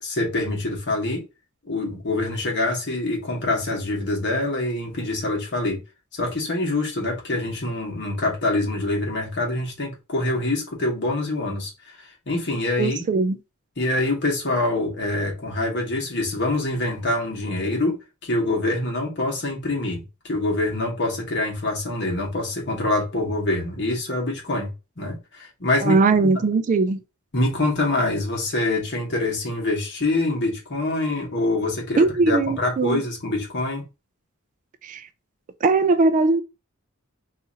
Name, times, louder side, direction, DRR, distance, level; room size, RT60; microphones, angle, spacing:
voice 1, 0.0-1.2 1.6-5.8 6.1-11.7 12.3-13.0 13.8-18.0 18.2-20.0 20.2-26.4 27.3-33.8, left 2 dB, 55° left, 1.2 m, -25 dB
voice 2, 12.8-13.4 25.8-27.0 32.0-33.0 34.8-35.1 35.6-36.4, right 3 dB, 35° right, 0.3 m, -20 dB
2.7 x 2.5 x 4.0 m
head